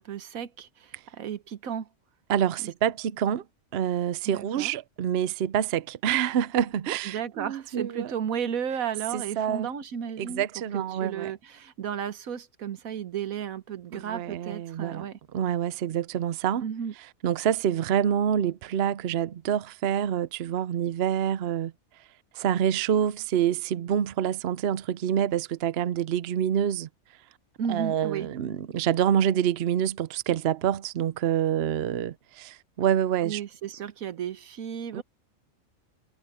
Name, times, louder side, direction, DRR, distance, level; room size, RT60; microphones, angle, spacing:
voice 1, 0.0-1.9 4.3-4.7 7.0-10.4 10.7-15.2 16.6-16.9 27.6-28.3 33.2-35.0, right 8 dB, 85° right, 1.5 m, -34 dB
voice 2, 2.3-3.4 3.7-8.1 9.1-9.7 10.2-11.3 14.0-15.1 15.3-16.6 17.2-21.7 22.3-26.9 27.7-33.4 34.9-35.0, right 9 dB, 60° right, 0.8 m, -27 dB
omnidirectional pair, 1.4 m